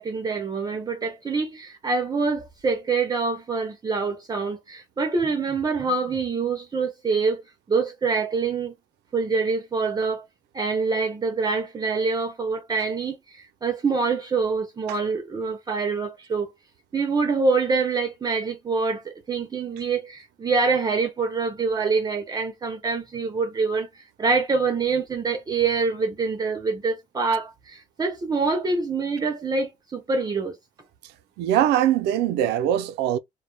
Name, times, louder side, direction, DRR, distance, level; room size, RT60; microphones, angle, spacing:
voice 1, 0.0-7.4 7.7-8.7 9.1-10.2 10.5-16.5 16.9-30.6, right 4 dB, 25° right, 0.5 m, -25 dB
voice 2, 31.4-33.2, right 11 dB, 80° right, 0.4 m, -22 dB
2.1 x 2.0 x 3.1 m
cardioid pair, 110°, 17 cm